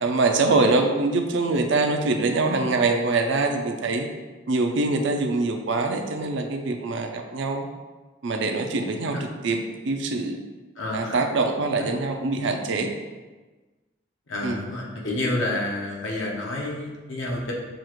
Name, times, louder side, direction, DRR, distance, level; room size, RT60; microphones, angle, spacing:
voice 1, 0.0-4.1 4.5-7.7 8.2-10.4 10.9-12.9 14.4-14.6, right 3 dB, 65° right, 4 dB, 0.5 m, -24 dB
voice 2, 10.8-11.2 11.8-11.9 14.3-17.5, left 1 dB, 75° left, -2 dB, 0.9 m, -29 dB
6.2 x 2.4 x 3.0 m, 1.3 s
head